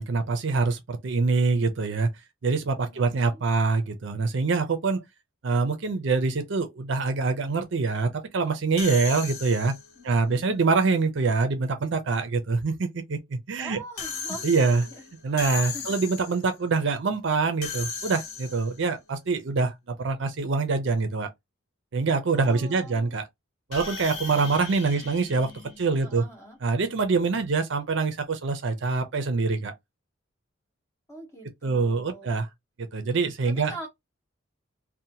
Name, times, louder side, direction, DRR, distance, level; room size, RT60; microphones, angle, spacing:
voice 1, 0.0-2.1 2.4-5.0 5.4-9.7 10.0-13.8 14.4-14.8 15.2-21.3 21.9-23.3 23.7-25.5 25.8-26.2 26.6-29.7 31.6-32.5 32.8-33.7, right 4 dB, 60° right, 0.5 m, -25 dB
voice 2, 2.9-3.4 10.0-10.4 13.6-15.0 15.4-16.1 22.3-23.2 24.4-24.5 25.0-25.1 26.0-26.6 31.1-32.3 33.5-33.9, right 1 dB, 15° left, 1.1 m, -44 dB
sound 1, 8.8-10.0 14.0-16.5 17.6-18.9 23.7-26.3, left 5 dB, 90° left, 0.8 m, -37 dB
2.8 x 2.1 x 2.7 m
head